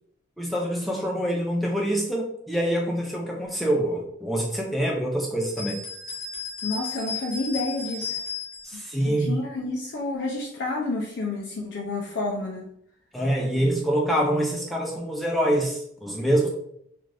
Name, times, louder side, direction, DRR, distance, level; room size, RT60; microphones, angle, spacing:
voice 1, 0.4-5.8 8.6-9.4 13.1-16.5, right 1 dB, ahead, -2 dB, 0.5 m, -25 dB
sound 1, 5.4-8.7, left 5 dB, 50° left, 0.9 m, -34 dB
voice 2, 6.6-8.2 8.7-12.7, left 2 dB, 70° left, -2 dB, 0.4 m, -30 dB
2.5 x 2.4 x 3.2 m, 0.72 s
head